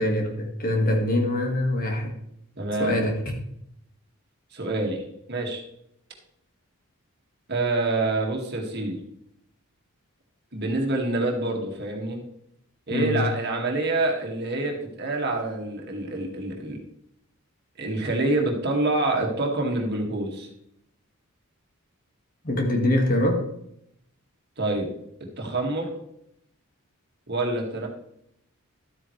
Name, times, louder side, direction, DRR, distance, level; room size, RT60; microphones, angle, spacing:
voice 1, 0.0-2.1 2.8-3.3 12.9-13.3 22.4-23.5, left 1 dB, 40° left, 2 dB, 1.8 m, -24 dB
voice 2, 2.6-3.0 4.5-5.0 5.3-5.6 7.5-9.0 10.5-12.2 12.9-16.8 17.8-20.5 24.6-24.9 25.4-25.9 27.3-27.9, right 2 dB, 45° right, 1 dB, 2.1 m, -26 dB
12.5 x 8.7 x 3.3 m, 0.74 s
head